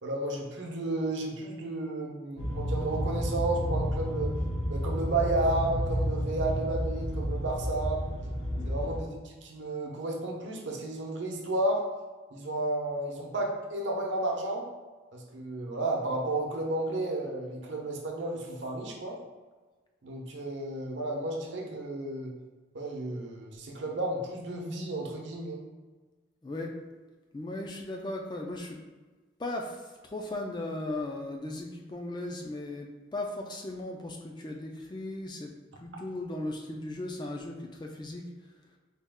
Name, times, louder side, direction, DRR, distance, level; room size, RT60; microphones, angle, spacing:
voice 1, 0.0-4.3 4.7-8.0 8.7-11.8 12.3-14.7 15.1-19.2 20.0-22.3 22.7-25.6, right 2 dB, 70° right, 0 dB, 0.7 m, -32 dB
sound 1, 2.4-9.0, equal, 85° left, 0.8 m, -31 dB
voice 2, 26.4-26.7 27.3-28.8 29.4-35.5 35.8-38.2, left 2 dB, 20° left, 2 dB, 0.3 m, -37 dB
4.1 x 2.3 x 3.5 m, 1.3 s
head